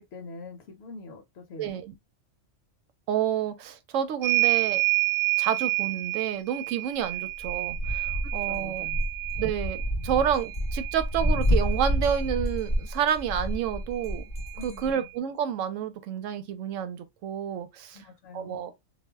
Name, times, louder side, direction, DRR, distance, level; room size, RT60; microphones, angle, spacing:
voice 1, 0.0-1.8 7.0-7.1 8.2-9.0 14.5-15.1 17.9-18.7, left 3 dB, 65° left, 0.8 m, -44 dB
voice 2, 1.6-1.9 3.1-4.8 5.4-8.9 9.4-14.2 14.6-18.0 18.3-18.7, right 9 dB, 85° right, 0.9 m, -29 dB
sound 1, 4.2-12.3 13.6-13.7 14.0-15.1, right 25 dB, 65° right, 0.4 m, -29 dB
sound 2, 7.4-14.9, equal, 35° left, 0.6 m, -29 dB
2.4 x 2.1 x 3.3 m
omnidirectional pair, 1.3 m